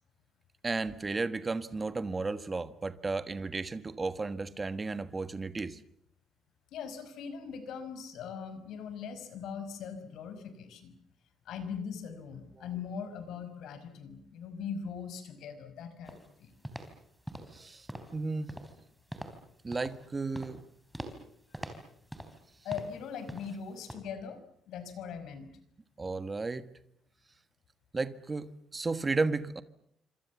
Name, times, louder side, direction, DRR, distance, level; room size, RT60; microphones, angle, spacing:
voice 1, 0.6-5.8 12.6-12.7 17.5-17.9 18.1-18.5 19.6-20.6 26.0-26.7 27.9-29.6, right 3 dB, 20° right, 1.5 m, -33 dB
voice 2, 6.7-11.0 11.5-16.5 21.5-21.7 22.6-25.5, left 6 dB, 80° left, 5.3 m, -41 dB
sound 1, 16.0-16.3 16.6-17.0 17.3-17.6 17.9-18.2 18.5-18.8 19.1-19.4 19.7-20.1 20.3-20.6 20.9-21.2 21.5-22.4 22.7-23.0 23.3-23.6 23.9-24.0, right 1 dB, ahead, 3.7 m, -43 dB
27.0 x 26.5 x 7.3 m
cardioid pair, 150°, 0 cm